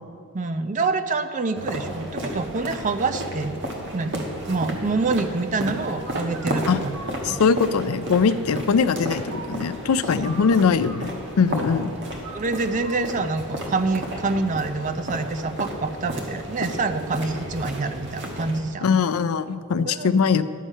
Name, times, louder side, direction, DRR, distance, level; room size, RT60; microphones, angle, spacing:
voice 1, 0.3-3.6 3.9-7.0 7.2-7.4 10.2-10.3 11.5-11.6 12.3-18.9 19.8-20.1, right 3 dB, 35° right, 9 dB, 0.5 m, -26 dB
sound 1, 1.6-18.6, right 1 dB, 55° right, 1.4 m, -33 dB
voice 2, 7.2-11.9 18.8-20.4, left 5 dB, 80° left, 12 dB, 0.4 m, -21 dB
11.0 x 7.4 x 5.5 m, 2.5 s
head